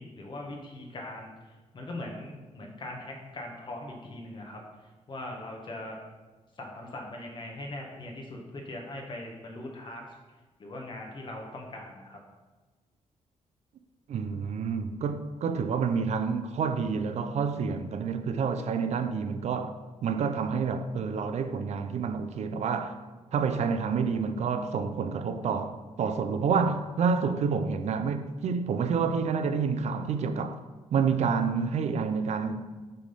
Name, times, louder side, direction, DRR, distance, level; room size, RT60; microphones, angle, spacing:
voice 1, 0.0-1.3 1.7-4.6 5.1-6.0 6.6-10.0 10.6-12.2, left 1 dB, 40° left, 1.3 m, -40 dB
voice 2, 14.1-19.8 20.0-23.0 23.3-30.6 30.9-32.7, right 5 dB, 65° right, 0.6 m, -28 dB
8.2 x 3.5 x 5.5 m
wide cardioid pair, 140°, 12 cm